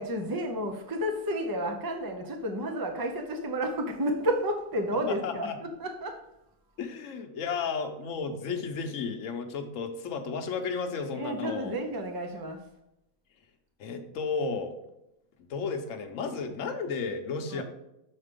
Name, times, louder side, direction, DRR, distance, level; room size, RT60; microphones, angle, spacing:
voice 1, 0.0-6.2 11.1-12.7 17.5-17.6, equal, 30° right, 4 dB, 0.3 m, -31 dB
voice 2, 5.1-5.6 6.8-11.7 13.8-14.7 15.5-17.6, left 5 dB, 65° left, 6 dB, 1.2 m, -33 dB
6.6 x 4.5 x 5.2 m, 0.87 s
omnidirectional pair, 1.5 m